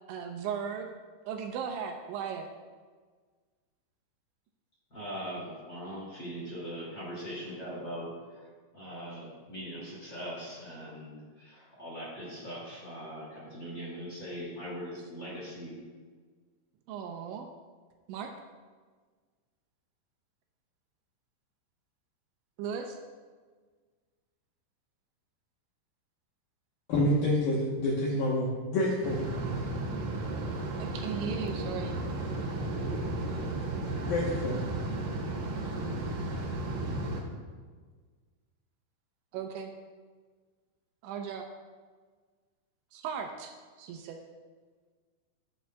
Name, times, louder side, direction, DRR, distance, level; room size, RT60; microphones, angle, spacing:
voice 1, 0.1-0.9 1.3-2.5 16.9-17.5 18.1-18.3 22.6-23.0 30.8-32.0 39.3-39.7 41.0-41.5 42.9-44.2, right 7 dB, 80° right, 4 dB, 2.9 m, -37 dB
voice 2, 4.9-8.5 8.7-15.8, equal, 35° left, -6 dB, 2.0 m, -41 dB
voice 3, 26.9-29.2 34.0-34.6, left 1 dB, 75° left, -3 dB, 2.1 m, -28 dB
sound 1, 29.0-37.2, right 2 dB, 65° right, 2.2 m, -34 dB
12.0 x 12.0 x 2.3 m, 1.5 s
omnidirectional pair, 5.6 m